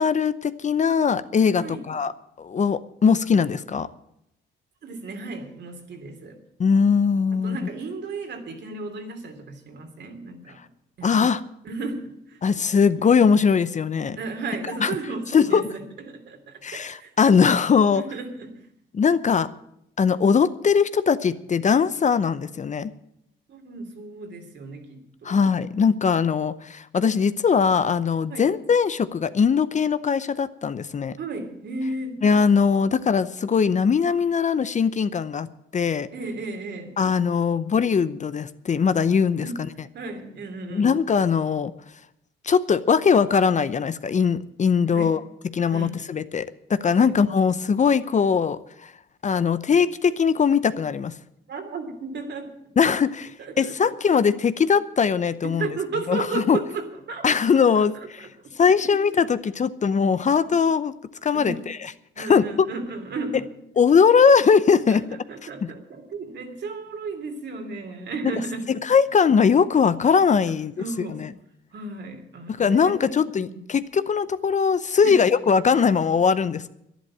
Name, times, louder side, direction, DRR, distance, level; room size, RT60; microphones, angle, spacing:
voice 1, 0.0-2.1 2.4-3.9 6.6-7.6 11.0-11.4 12.4-14.2 14.8-14.9 15.3-15.6 16.6-18.0 18.9-19.5 20.0-22.9 25.2-31.2 32.2-35.5 35.7-36.1 37.0-39.5 40.7-41.7 42.4-45.2 45.5-48.9 49.2-51.1 52.8-53.3 53.6-55.7 56.1-56.6 57.2-58.3 58.6-60.9 61.2-61.5 62.2-62.4 63.8-65.0 68.8-70.7 72.6-76.7, left 6 dB, 35° left, 14 dB, 0.7 m, -20 dB
voice 2, 4.8-6.4 7.3-10.6 11.0-11.1 11.6-12.4 12.7-12.9 14.2-17.4 17.9-18.7 23.5-25.4 28.3-28.5 31.2-32.2 36.1-37.0 39.4-39.6 39.9-40.9 44.9-45.1 45.7-46.0 47.0-47.2 51.5-52.6 53.4-53.7 55.4-57.3 57.7-58.5 58.9-59.0 61.3-61.6 62.2-63.5 64.9-68.7 70.8-71.2 71.7-73.6 75.0-75.2, right 3 dB, 60° right, 5 dB, 3.1 m, -34 dB
11.0 x 11.0 x 8.8 m, 0.78 s
cardioid pair, 90°, 20 cm